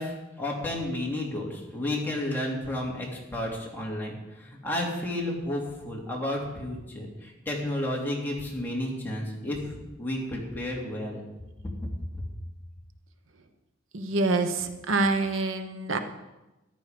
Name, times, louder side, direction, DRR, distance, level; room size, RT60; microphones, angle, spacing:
voice 1, 0.0-3.1 3.3-11.2 11.8-12.2, left 1 dB, 10° left, -2 dB, 2.8 m, -32 dB
voice 2, 13.9-16.0, right 3 dB, 75° right, 8 dB, 1.1 m, -26 dB
14.0 x 11.0 x 5.1 m, 1.0 s
head